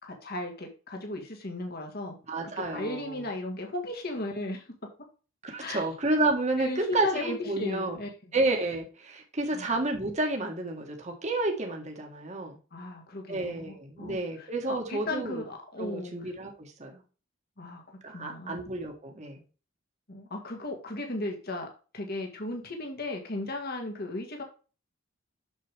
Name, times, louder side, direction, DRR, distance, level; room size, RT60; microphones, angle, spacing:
voice 1, 0.0-2.1 2.7-4.6 5.6-5.8 6.6-8.1 9.5-9.8 12.7-16.1 17.6-18.6 20.1-24.4, left 2 dB, 50° left, 2 dB, 2.0 m, -36 dB
voice 2, 2.3-3.2 5.4-8.0 8.3-12.6 13.3-15.4 15.8-17.0 18.0-19.4, right 2 dB, 35° right, 2 dB, 1.7 m, -30 dB
7.5 x 6.8 x 3.5 m, 0.34 s
head